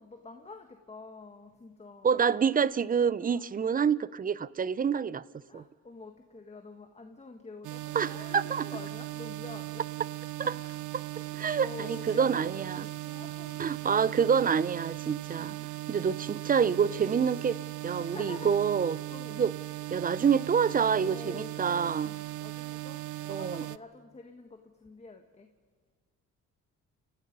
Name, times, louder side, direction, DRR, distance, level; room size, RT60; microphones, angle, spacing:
voice 1, 0.0-2.2 3.2-3.5 5.5-9.8 10.4-10.8 11.1-12.6 13.0-13.6 15.4-15.7 18.0-18.6 19.1-19.5 20.9-25.5, left 3 dB, 20° left, 1.6 m, -47 dB
voice 2, 2.0-5.2 5.5-5.6 7.9-8.6 11.3-12.9 13.6-15.6 15.9-17.6 17.8-18.9 19.4-19.5 19.9-22.1 23.3-23.6, right 7 dB, 30° right, 0.6 m, -27 dB
sound 1, 7.6-23.8, right 17 dB, 80° right, 0.5 m, -38 dB
Domestic sounds home sounds, 9.7-12.2 12.4-14.0 14.2-14.3 14.9-16.0 16.5-16.6 16.9-17.4 17.8-19.0 19.4-22.1, right 3 dB, 60° right, 6.7 m, -62 dB
29.5 x 16.0 x 5.4 m
cardioid pair, 90°, 30 cm